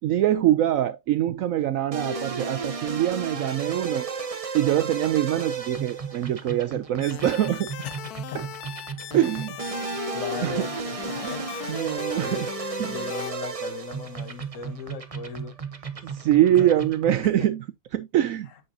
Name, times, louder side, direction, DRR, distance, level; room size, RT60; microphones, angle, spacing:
voice 1, 0.0-4.1 4.5-7.7 8.3-8.5 9.1-9.6 10.4-10.7 11.2-11.4 11.7-12.5 12.8-13.0 16.0-17.7 17.9-18.5, right 12 dB, 85° right, 0.7 m, -24 dB
sound 1, 1.9-17.3, right 4 dB, 65° right, 0.3 m, -34 dB
sound 2, 7.0-13.3, left 12 dB, 70° left, 0.9 m, -38 dB
voice 2, 7.8-8.4 9.7-10.8 11.1-12.5 12.8-15.6 16.5-16.7, left 7 dB, 50° left, 1.3 m, -38 dB
8.6 x 6.1 x 2.7 m
omnidirectional pair, 2.0 m